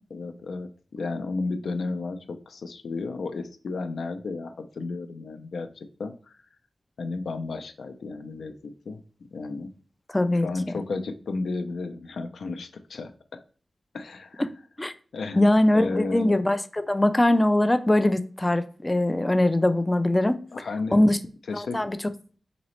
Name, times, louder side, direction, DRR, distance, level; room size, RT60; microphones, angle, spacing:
voice 1, 0.1-6.4 7.0-9.0 9.3-9.7 10.4-13.1 13.9-14.5 15.1-15.4 15.7-16.4 20.5-21.0 21.5-21.9, left 3 dB, 80° left, 0.5 m, -33 dB
voice 2, 10.1-10.5 14.8-14.9 15.4-20.4 20.9-21.2 21.5-22.0, left 1 dB, 15° left, 0.3 m, -21 dB
3.9 x 3.0 x 3.0 m
wide cardioid pair, 140°, 0 cm